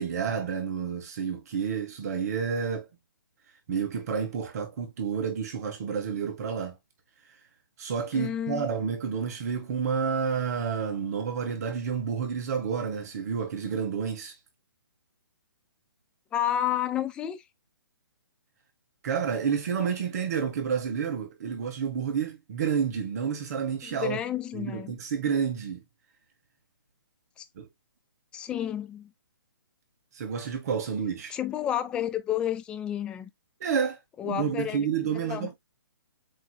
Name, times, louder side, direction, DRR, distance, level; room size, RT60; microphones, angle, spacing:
voice 1, 0.0-2.9 3.7-6.8 7.8-14.4 19.0-24.2 24.5-25.8 27.5-27.7 30.1-31.4 33.6-34.0 34.2-35.6, right 6 dB, 45° right, 1.6 m, -30 dB
voice 2, 8.1-8.7 16.3-17.4 23.8-24.9 27.4-27.5 28.3-29.1 31.3-33.3 34.2-34.9 35.1-35.5, left 11 dB, 10° left, 0.3 m, -31 dB
7.5 x 3.1 x 2.3 m
hypercardioid pair, 155°, 12 cm